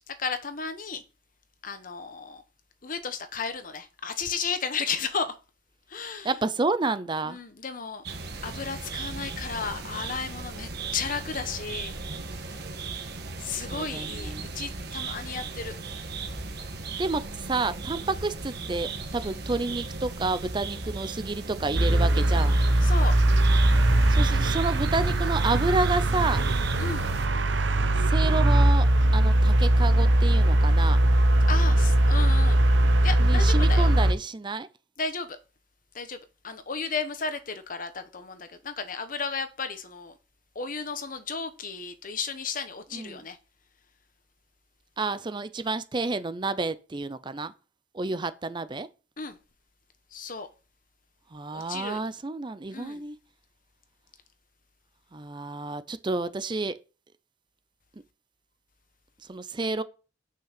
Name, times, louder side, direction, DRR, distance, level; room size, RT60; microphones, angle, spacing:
voice 1, 0.1-1.0 1.6-2.4 2.8-5.4 5.9-6.4 7.3-8.0 8.4-12.0 12.5-12.6 13.4-15.7 22.8-23.2 26.8-27.1 31.5-32.6 33.0-33.9 35.0-35.4 35.9-36.2 36.4-40.2 40.5-43.4 49.2-49.3 50.1-50.5 51.5-52.0 52.7-53.0, left 5 dB, 50° left, 1.1 m, -34 dB
voice 2, 6.2-7.4 13.7-14.5 17.0-22.6 24.1-26.4 28.1-28.9 29.1-31.0 33.2-34.7 42.9-43.2 45.0-47.5 47.9-48.9 51.3-53.2 55.1-56.7 59.3-59.8, right 3 dB, 25° right, 0.5 m, -30 dB
sound 1, 8.0-27.3, right 3 dB, 65° right, 1.5 m, -37 dB
sound 2, 21.7-34.1, right 1 dB, 85° right, 0.9 m, -21 dB
6.1 x 5.8 x 6.6 m
head